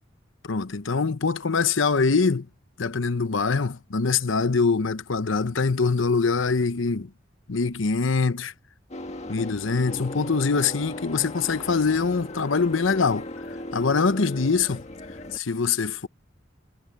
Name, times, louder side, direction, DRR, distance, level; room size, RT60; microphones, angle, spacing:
voice 1, 0.4-2.5 2.8-7.1 7.5-8.5 9.3-13.3 13.7-14.8 15.3-16.1, left 4 dB, 80° left, 0.9 m, -23 dB
sound 1, 8.9-15.4, left 1 dB, 35° left, 1.8 m, -37 dB
head